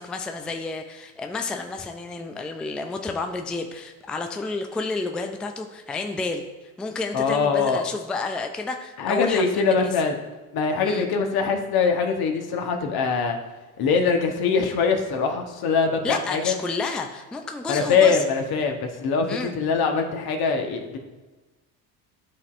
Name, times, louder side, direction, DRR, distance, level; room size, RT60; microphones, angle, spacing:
voice 1, 0.0-6.5 6.8-9.8 10.8-11.1 16.0-18.2 19.3-19.6, left 3 dB, ahead, 5 dB, 0.3 m, -30 dB
voice 2, 7.1-7.8 9.0-10.2 10.5-13.4 13.8-16.6 17.7-21.0, left 5 dB, 45° left, 4 dB, 1.2 m, -23 dB
11.5 x 4.1 x 2.5 m, 1.2 s
hypercardioid pair, 70°, 50 cm